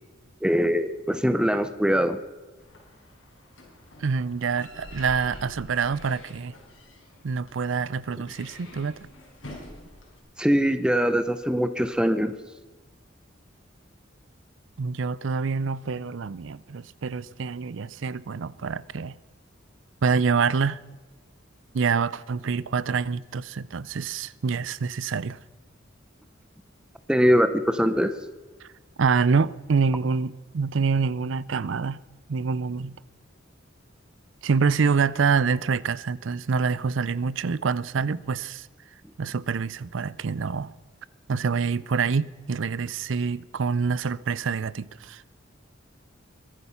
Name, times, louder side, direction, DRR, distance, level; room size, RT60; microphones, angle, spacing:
voice 1, 0.4-2.2 10.4-12.3 27.1-28.2, equal, 5° right, 0.7 m, -22 dB
sound 1, 2.6-10.2, left 1 dB, 75° left, 5.3 m, -46 dB
voice 2, 4.0-6.5 7.2-9.1 14.8-19.2 20.0-20.8 21.7-25.4 28.6-28.7 29.0-32.0 32.3-33.0 34.4-38.7 39.2-40.7 41.3-45.2, right 5 dB, 70° right, 0.5 m, -26 dB
22.5 x 11.5 x 5.7 m
head